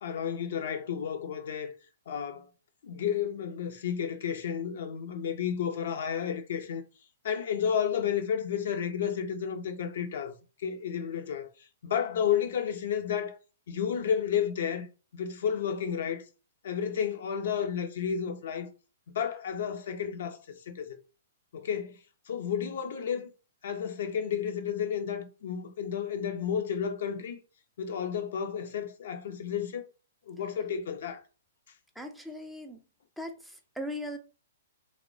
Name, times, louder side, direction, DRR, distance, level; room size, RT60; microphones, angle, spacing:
voice 1, 0.0-1.7 2.1-2.5 2.8-6.8 7.2-10.3 10.6-11.5 11.8-13.4 13.7-14.9 15.1-16.2 16.6-18.7 19.1-20.4 20.7-21.0 21.5-22.0 22.3-23.3 23.6-27.4 27.8-29.9 30.3-31.2, left 8 dB, 65° left, 0.5 m, -31 dB
voice 2, 32.0-32.8 33.2-34.2, left 1 dB, ahead, 0.4 m, -39 dB
2.9 x 2.1 x 2.6 m
hypercardioid pair, 125°, 0 cm